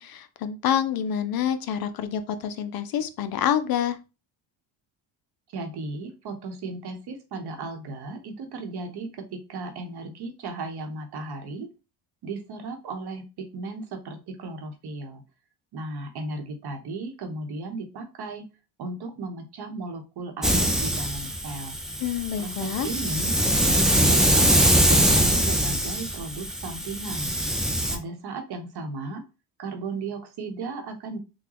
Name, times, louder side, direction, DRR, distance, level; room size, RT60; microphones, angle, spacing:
voice 1, 0.0-4.0 22.0-22.9, left 9 dB, 55° left, 11 dB, 0.5 m, -27 dB
voice 2, 5.5-11.7 12.2-15.2 15.7-18.4 18.8-21.8 22.4-23.3 23.6-27.3 27.9-29.2 29.6-31.2, right 3 dB, 55° right, 5 dB, 1.0 m, -35 dB
Hiss, 20.4-28.0, right 1 dB, ahead, 0.5 m, -23 dB
3.8 x 2.2 x 2.9 m, 0.29 s
cardioid pair, 95°, 46 cm